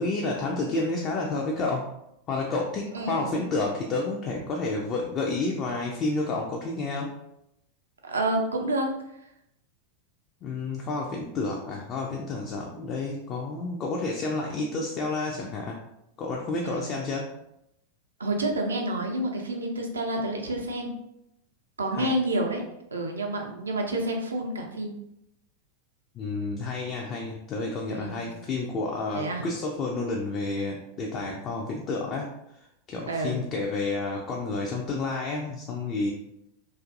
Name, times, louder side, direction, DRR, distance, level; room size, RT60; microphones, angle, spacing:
voice 1, 0.0-1.9 2.3-7.1 10.4-15.8 16.2-17.3 21.9-22.1 26.1-32.3 32.9-36.1, left 3 dB, 30° left, -1 dB, 0.3 m, -30 dB
voice 2, 2.9-3.4 8.0-9.0 16.6-17.1 18.2-20.9 21.8-22.6 22.9-24.9 27.9-28.4 29.1-29.5 31.2-31.4 33.1-33.5, right 1 dB, 70° right, 2 dB, 0.4 m, -29 dB
2.5 x 2.4 x 2.5 m, 0.81 s
figure-of-eight pair, 90°, 0 cm